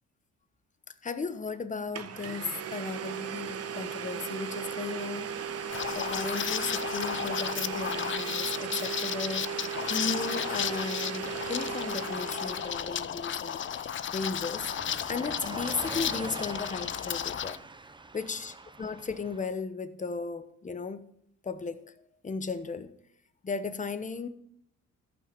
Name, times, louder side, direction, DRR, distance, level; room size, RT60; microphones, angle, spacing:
voice 1, 1.0-5.3 5.9-9.6 9.9-14.7 15.1-17.6 18.1-21.0 21.4-21.8 22.2-22.9 23.4-24.3, left 4 dB, 25° left, 1.0 m, -36 dB
Domestic sounds home sounds, 1.5-1.6 1.9-13.0, right 7 dB, 55° right, 1.0 m, -36 dB
Car passing by / Truck, 5.4-19.5, right 3 dB, 15° right, 0.7 m, -47 dB
Liquid, 5.7-17.6, left 9 dB, 40° left, 0.5 m, -34 dB
14.5 x 5.8 x 5.2 m
cardioid pair, 90°, 30 cm